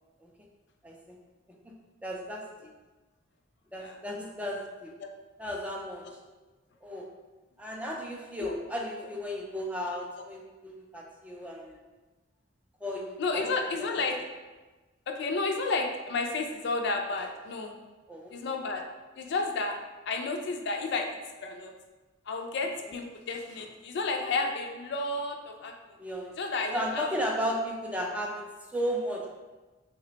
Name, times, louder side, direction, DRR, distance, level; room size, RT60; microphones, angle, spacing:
voice 1, 0.8-1.2 2.0-2.7 3.7-4.9 5.4-6.1 6.8-7.1 7.6-11.8 12.8-13.5 14.1-14.2 18.1-18.6 26.0-26.4 26.7-28.4 28.7-29.3, equal, 5° right, -1 dB, 0.3 m, -34 dB
voice 2, 13.2-14.2 15.1-17.7 18.3-18.8 19.2-19.7 20.1-21.1 21.4-21.7 22.3-25.7 26.4-27.1, left 3 dB, 60° left, 3 dB, 0.4 m, -31 dB
3.2 x 2.1 x 3.9 m, 1.2 s
head